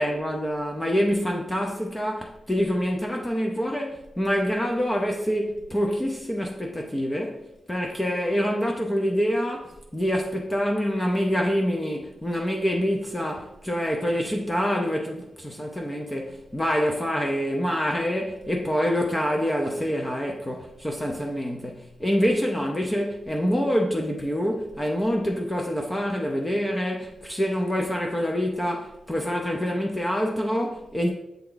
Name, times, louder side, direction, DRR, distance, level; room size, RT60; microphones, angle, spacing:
voice 1, 0.0-31.1, equal, 15° left, 0.5 m, -26 dB
7.7 x 3.4 x 3.9 m
wide cardioid pair, 175°, 0 cm